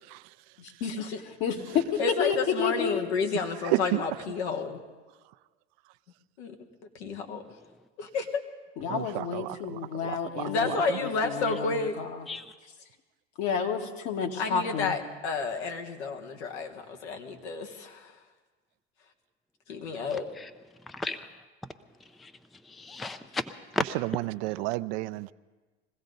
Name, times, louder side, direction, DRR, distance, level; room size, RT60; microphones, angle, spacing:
voice 1, 0.6-1.1 1.4-3.0 8.8-12.2 13.4-14.9, left 6 dB, 60° left, 1.8 m, -30 dB
voice 2, 2.0-4.8 6.4-6.5 6.9-7.4 8.0-8.4 10.4-12.0 14.4-18.1 19.7-20.3, left 4 dB, 80° left, 1.6 m, -31 dB
voice 3, 3.6-4.0 8.9-11.0 23.9-25.3, right 20 dB, 65° right, 0.5 m, -32 dB
voice 4, 20.9-21.3 22.2-22.3 22.7-23.8, left 2 dB, ahead, 0.4 m, -34 dB
22.0 x 16.0 x 3.9 m
hypercardioid pair, 90°, 33 cm